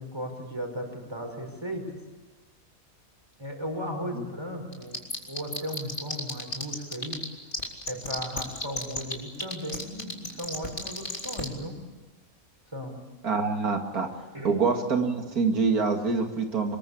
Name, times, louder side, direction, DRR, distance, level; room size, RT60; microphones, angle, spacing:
voice 1, 0.0-2.0 3.4-7.2 7.9-11.8 12.7-13.0 14.3-14.5, equal, 15° right, 3 dB, 5.4 m, -36 dB
sound 1, 4.7-7.2 7.5-11.4, left 2 dB, 35° left, 3.6 m, -31 dB
voice 2, 13.2-14.1 14.4-16.8, right 4 dB, 90° right, 5 dB, 2.6 m, -25 dB
25.0 x 21.5 x 8.5 m, 1.2 s
omnidirectional pair, 1.5 m